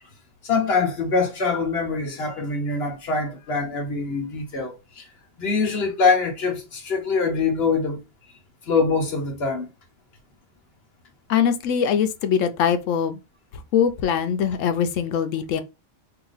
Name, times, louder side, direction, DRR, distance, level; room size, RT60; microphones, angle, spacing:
voice 1, 0.4-5.1 5.4-8.0 8.6-9.7, left 4 dB, 55° left, 1.2 m, -24 dB
voice 2, 11.3-13.2 13.7-15.6, left 8 dB, 85° left, 0.9 m, -22 dB
2.9 x 2.6 x 3.8 m
omnidirectional pair, 1.3 m